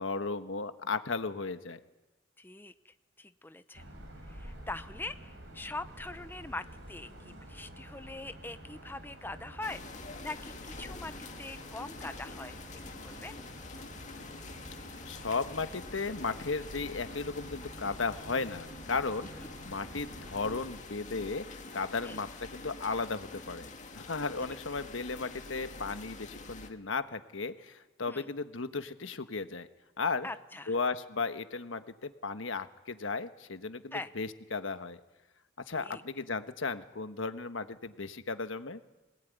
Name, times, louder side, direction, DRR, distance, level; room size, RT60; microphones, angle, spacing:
voice 1, 0.0-1.8 15.1-23.7 23.9-29.7 30.0-30.3 30.7-35.0 35.7-38.8, left 4 dB, 85° left, 10 dB, 1.3 m, -35 dB
voice 2, 2.4-3.9 4.3-9.8 10.2-12.6 13.0-13.4 19.4-19.5 22.0-22.2 28.1-28.3 30.2-30.8 33.9-34.1 35.7-36.0, left 2 dB, 10° left, 11 dB, 0.7 m, -43 dB
sound 1, 3.7-20.7, right 1 dB, 65° right, 6.4 m, -49 dB
sound 2, 9.6-26.7, left 3 dB, 40° left, 2.0 m, -46 dB
24.5 x 18.5 x 9.4 m, 1.1 s
head